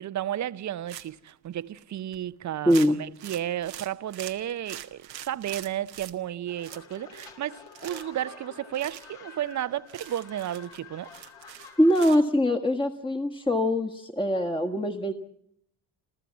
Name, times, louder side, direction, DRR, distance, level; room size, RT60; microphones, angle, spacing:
voice 1, 0.0-11.1, right 11 dB, 35° right, 0.7 m, -33 dB
sound 1, 0.9-1.3 1.8-1.9 2.1-2.3 2.7-6.1 6.6-7.4 7.7-8.2 8.7-9.0 9.5-9.6 9.9-12.2, right 11 dB, 90° right, 1.0 m, -43 dB
voice 2, 2.6-3.0 11.8-15.1, equal, 10° left, 1.5 m, -23 dB
sound 2, 6.5-12.2, left 5 dB, 60° left, 3.1 m, -49 dB
29.0 x 14.0 x 7.3 m
hypercardioid pair, 50°, 49 cm